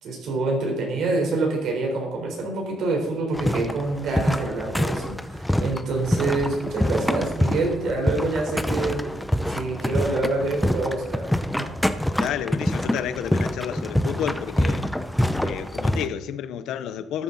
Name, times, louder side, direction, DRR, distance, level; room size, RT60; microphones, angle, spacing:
voice 1, 0.0-9.0 9.5-11.3 11.5-11.7, right 3 dB, 70° right, 4.0 m, -26 dB
sound 1, 3.3-16.1, left 1 dB, 5° left, 0.7 m, -26 dB
voice 2, 12.2-14.9 15.4-17.2, left 9 dB, 85° left, 0.8 m, -30 dB
13.0 x 11.0 x 4.1 m
cardioid pair, 140°, 0 cm